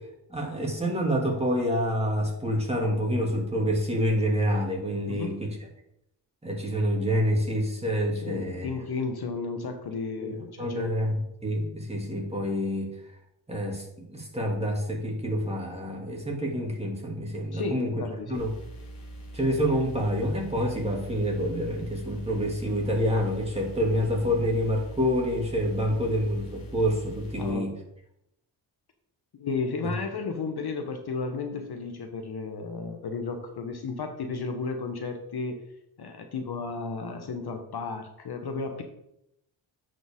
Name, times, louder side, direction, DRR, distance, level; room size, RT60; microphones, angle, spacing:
voice 1, 0.3-5.6 6.4-8.7 10.2-12.9 13.5-17.9 18.3-18.5 19.3-27.7, equal, 15° right, -1 dB, 2.4 m, -27 dB
voice 2, 5.1-5.4 8.2-10.9 17.5-18.5 27.4-27.7 29.3-35.6 36.0-38.8, left 4 dB, 55° left, 5 dB, 1.1 m, -33 dB
sound 1, 18.3-27.5, right 2 dB, 90° left, 1.8 m, -43 dB
10.0 x 5.1 x 3.6 m, 0.80 s
cardioid pair, 75°, 47 cm